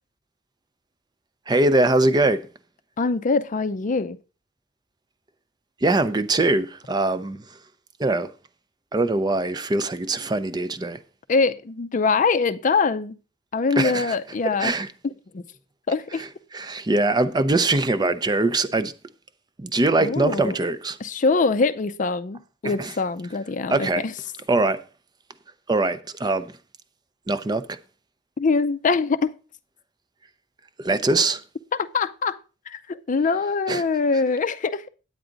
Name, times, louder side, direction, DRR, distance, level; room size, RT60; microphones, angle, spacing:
voice 1, 1.5-2.5 5.8-7.4 8.0-8.3 8.9-11.0 13.8-14.1 14.6-14.9 16.5-18.9 19.6-21.0 22.6-22.9 23.7-24.0 24.5-24.8 25.7-26.5 27.3-27.6 30.8-31.4 33.7-33.8, right 2 dB, 20° right, 0.5 m, -22 dB
voice 2, 3.0-4.2 11.3-13.2 13.5-14.7 15.0-15.4 15.9-16.2 20.0-20.6 21.0-24.1 28.4-29.3 31.7-32.4 32.7-34.9, left 4 dB, 40° left, 0.5 m, -23 dB
9.1 x 8.8 x 3.9 m
head